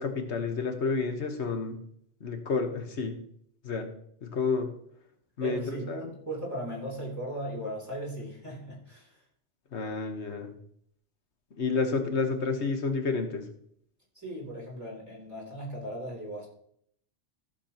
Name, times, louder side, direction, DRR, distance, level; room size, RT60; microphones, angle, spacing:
voice 1, 0.0-1.8 2.2-3.2 3.6-3.9 4.2-4.7 5.4-6.1 9.7-10.5 11.6-13.5, left 4 dB, 70° left, 5 dB, 1.5 m, -30 dB
voice 2, 5.4-9.2 14.2-16.5, right 1 dB, 15° right, -4 dB, 3.3 m, -37 dB
14.5 x 6.9 x 2.9 m, 0.67 s
omnidirectional pair, 1.2 m